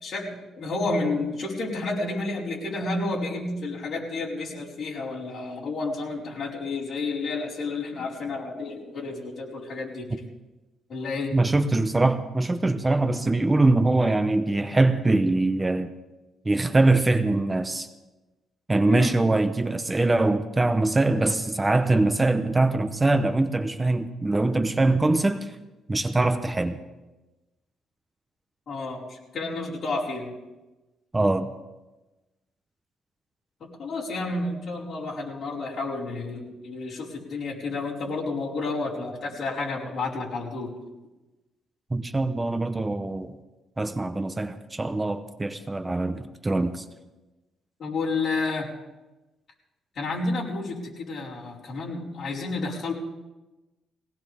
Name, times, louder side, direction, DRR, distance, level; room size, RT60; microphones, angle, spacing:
voice 1, 0.0-10.1 10.9-11.3 18.9-19.2 28.7-30.3 33.6-40.7 47.8-48.7 49.9-52.9, left 3 dB, 40° left, -5 dB, 5.0 m, -30 dB
voice 2, 11.3-15.9 16.4-17.9 18.7-25.5 25.9-26.8 31.1-31.5 41.9-43.3 43.8-46.8, right 2 dB, 15° right, 9 dB, 0.8 m, -23 dB
20.5 x 18.0 x 3.6 m, 1.1 s
cardioid pair, 130°, 0 cm